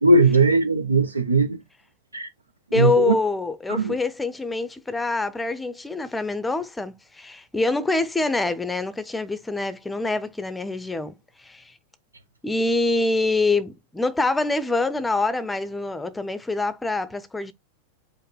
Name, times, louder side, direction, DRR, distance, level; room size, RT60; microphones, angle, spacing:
voice 1, 0.0-1.6 2.1-2.3 2.7-3.1 3.7-3.9, right 3 dB, 80° right, 0.7 m, -19 dB
voice 2, 2.7-11.1 11.4-11.6 12.4-17.5, left 3 dB, 10° left, 0.6 m, -25 dB
5.1 x 2.1 x 4.2 m
figure-of-eight pair, 90°, 0 cm